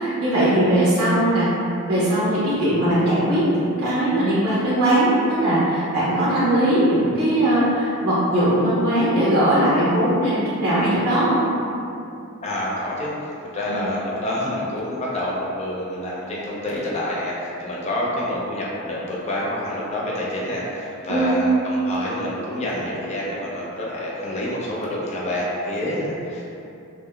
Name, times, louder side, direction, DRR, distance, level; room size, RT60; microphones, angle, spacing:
voice 1, 0.0-1.5 1.9-11.4 13.7-13.9 21.1-21.5, right 1 dB, 75° right, -11 dB, 0.9 m, -20 dB
voice 2, 12.4-13.1 13.5-26.4, left 1 dB, 30° left, -5 dB, 0.5 m, -27 dB
3.5 x 2.1 x 2.2 m, 2.7 s
head